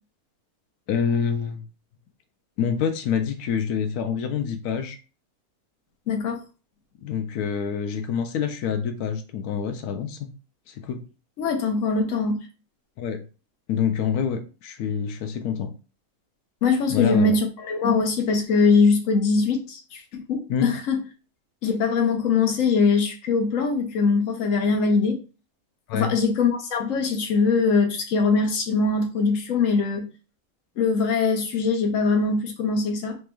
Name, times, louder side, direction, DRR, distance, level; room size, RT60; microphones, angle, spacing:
voice 1, 0.9-1.6 2.6-5.0 7.0-10.3 10.7-11.0 13.0-13.2 13.7-15.7 16.9-17.3 20.5-20.7 25.9-26.1, left 7 dB, 90° left, 1.1 m, -26 dB
voice 2, 6.1-6.4 11.4-12.4 16.6-20.0 20.3-20.9 21.6-25.2 25.9-30.1 30.8-33.2, left 4 dB, 65° left, 1.1 m, -22 dB
4.3 x 3.1 x 2.2 m
omnidirectional pair, 1.6 m